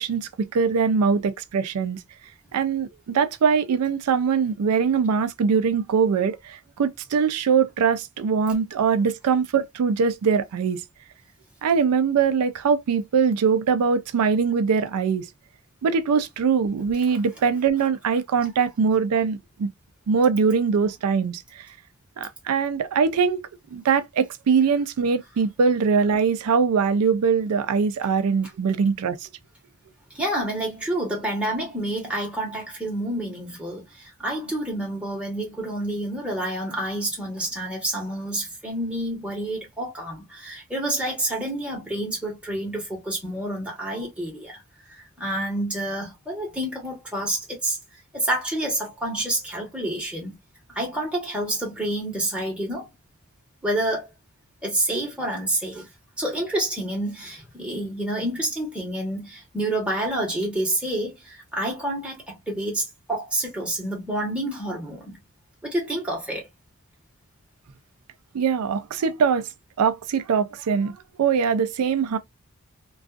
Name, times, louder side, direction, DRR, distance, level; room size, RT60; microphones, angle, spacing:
voice 1, 0.0-2.0 2.5-10.8 11.6-15.3 15.8-19.7 20.1-21.7 22.2-29.2 68.3-69.5 69.8-72.2, right 6 dB, 90° right, 0.4 m, -22 dB
voice 2, 30.1-44.6 44.9-47.8 48.1-50.3 50.7-52.9 53.6-54.1 54.6-55.9 56.2-65.2 65.6-66.5, right 1 dB, 5° right, 1.1 m, -28 dB
2.4 x 2.3 x 2.3 m
head